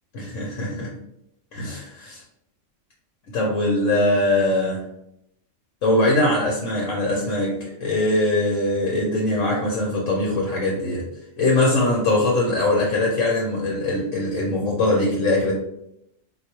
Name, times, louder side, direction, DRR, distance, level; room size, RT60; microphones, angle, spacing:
voice 1, 0.2-0.9 1.5-2.2 3.3-4.8 5.8-11.1 11.4-15.5, left 2 dB, 80° left, -2 dB, 1.1 m, -22 dB
4.1 x 2.3 x 2.9 m, 0.79 s
omnidirectional pair, 1.3 m